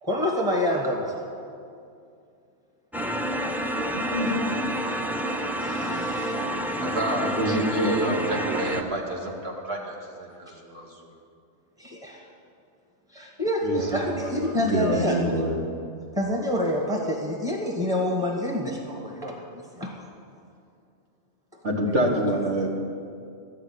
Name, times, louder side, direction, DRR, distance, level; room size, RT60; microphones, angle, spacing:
voice 1, 0.0-1.2 5.6-6.3 11.8-12.2 13.1-15.2 16.1-19.9 22.1-22.2, left 1 dB, 20° right, 0 dB, 1.5 m, -27 dB
sound 1, 2.9-8.8, equal, 5° right, 0.3 m, -28 dB
voice 2, 3.9-4.4 7.2-8.2 13.6-15.6 21.6-22.7, equal, 85° right, 0 dB, 2.0 m, -26 dB
voice 3, 6.8-10.9, right 1 dB, 60° right, -1 dB, 2.1 m, -30 dB
13.5 x 6.6 x 9.5 m, 2.4 s
omnidirectional pair, 1.2 m